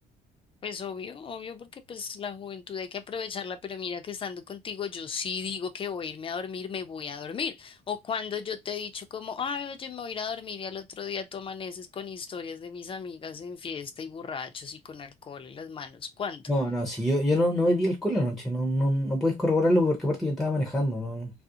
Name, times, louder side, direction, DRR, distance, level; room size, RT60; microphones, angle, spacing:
voice 1, 0.6-16.4, left 6 dB, 30° left, 0.5 m, -35 dB
voice 2, 16.5-21.3, left 1 dB, ahead, 0.7 m, -25 dB
2.5 x 2.0 x 2.7 m
cardioid pair, 110°, 17 cm